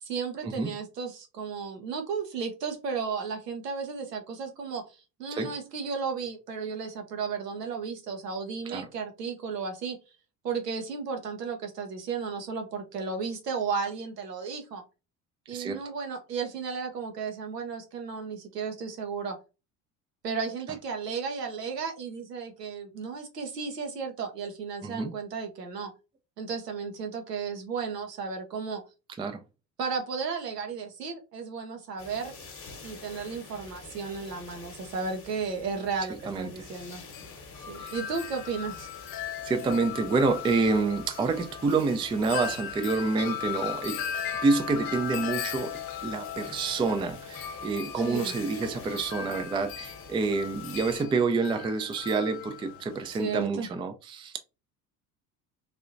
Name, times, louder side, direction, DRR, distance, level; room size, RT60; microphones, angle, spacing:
voice 1, 0.0-10.0 10.4-14.8 15.5-19.4 20.2-25.9 26.4-28.8 29.8-32.3 32.8-37.0 37.7-38.9 48.0-48.3 53.2-53.7, right 5 dB, 90° right, 0.9 m, -34 dB
voice 2, 24.8-25.1 29.2-29.4 36.3-36.5 37.8-37.9 39.4-44.0 44.4-45.7 46.0-54.4, right 4 dB, 10° right, 0.3 m, -28 dB
sound 1, 32.0-51.0, left 4 dB, 30° left, 1.0 m, -48 dB
Wind chime, 36.6-53.5, left 9 dB, 45° left, 0.6 m, -38 dB
3.3 x 2.8 x 2.5 m
hypercardioid pair, 65°, 47 cm